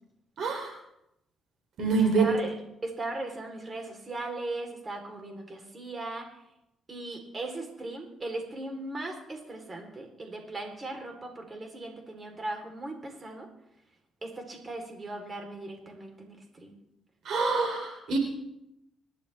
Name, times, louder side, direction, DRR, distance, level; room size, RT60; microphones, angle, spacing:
voice 1, 0.4-0.8 1.8-2.3 17.2-18.2, right 4 dB, 65° right, 2 dB, 3.3 m, -26 dB
voice 2, 2.2-2.5 2.8-6.3 6.9-13.5 14.2-16.8, right 2 dB, 30° right, 3 dB, 3.6 m, -38 dB
26.5 x 12.0 x 3.5 m, 0.84 s
cardioid pair, 90°, 0 cm